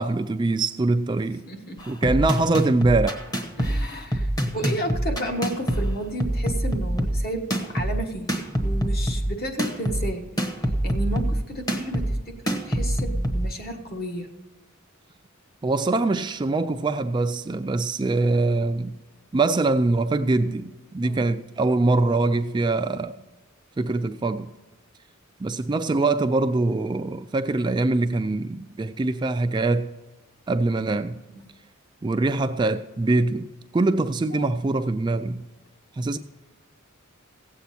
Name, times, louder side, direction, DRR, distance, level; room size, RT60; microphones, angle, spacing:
voice 1, 0.0-1.4 1.9-3.2 15.6-19.0 19.3-23.1 23.8-24.5 25.4-29.9 30.5-31.2 32.0-33.5 33.7-35.4 36.0-36.2, right 2 dB, 20° right, 0.3 m, -23 dB
voice 2, 1.5-1.8 3.6-10.3 10.8-14.3 21.0-21.3 31.3-31.4 34.3-34.5, right 1 dB, 45° left, 1.4 m, -32 dB
sound 1, 1.8-13.5, right 1 dB, 20° left, 1.1 m, -26 dB
16.5 x 8.1 x 4.3 m
head